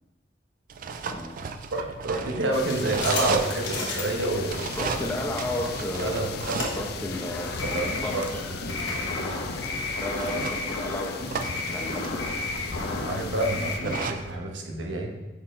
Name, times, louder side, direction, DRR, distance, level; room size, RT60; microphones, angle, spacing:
sound 1, 0.7-14.4, right 5 dB, 50° right, 0.3 m, -36 dB
voice 1, 1.7-4.8 6.0-6.6 7.6-8.4 8.7-9.4 13.0-15.2, right 2 dB, 85° right, 1 dB, 0.9 m, -29 dB
sound 2, 2.5-13.8, left 5 dB, 55° left, 0.4 m, -37 dB
sound 3, 2.6-14.1, left 2 dB, 90° left, 1.2 m, -34 dB
voice 2, 4.7-8.5 10.0-12.4, left 1 dB, 10° left, 1 dB, 0.7 m, -34 dB
5.6 x 4.3 x 4.3 m, 1.1 s
head